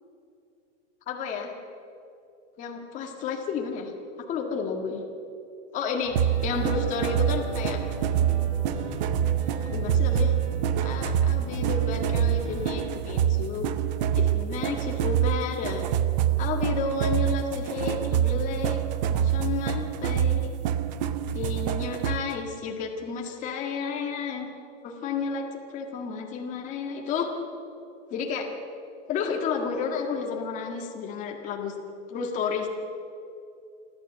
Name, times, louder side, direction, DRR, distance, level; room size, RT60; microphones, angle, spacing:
voice 1, 1.1-1.5 2.6-3.9 4.3-5.0 5.7-7.8 9.7-10.3 10.8-13.7 14.2-15.9 16.4-18.8 19.1-20.5 21.3-24.5 24.8-25.5 25.7-27.3 28.1-28.5 29.1-31.7 32.1-32.7, left 5 dB, 20° left, 1 dB, 1.8 m, -31 dB
sound 1, 6.0-12.8, right 2 dB, 20° right, 6.4 m, -37 dB
sound 2, 6.1-22.3, right 10 dB, 35° right, 0.7 m, -26 dB
28.5 x 12.5 x 8.1 m, 2.6 s
supercardioid pair, 175°, 36 cm